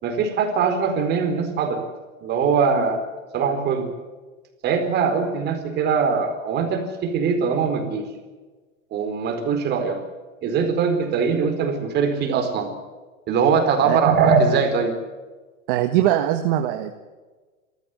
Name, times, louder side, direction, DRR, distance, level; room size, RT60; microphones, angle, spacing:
voice 1, 0.0-1.8 2.2-3.0 3.3-3.9 4.6-8.1 8.9-10.0 10.4-12.7 13.3-14.9, right 5 dB, 25° right, 5 dB, 4.4 m, -21 dB
voice 2, 15.7-16.9, right 12 dB, 45° right, 7 dB, 1.6 m, -21 dB
26.5 x 14.5 x 9.6 m, 1.3 s
supercardioid pair, 150°, 40 cm